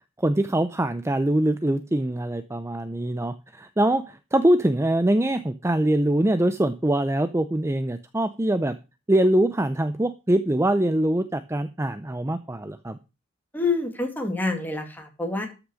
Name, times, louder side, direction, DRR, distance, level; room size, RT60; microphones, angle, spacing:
voice 1, 0.2-8.8 9.1-13.0, right 1 dB, 15° right, 12 dB, 0.5 m, -23 dB
voice 2, 13.5-15.5, left 3 dB, 10° left, 3 dB, 2.5 m, -27 dB
13.0 x 6.0 x 6.3 m, 0.30 s
head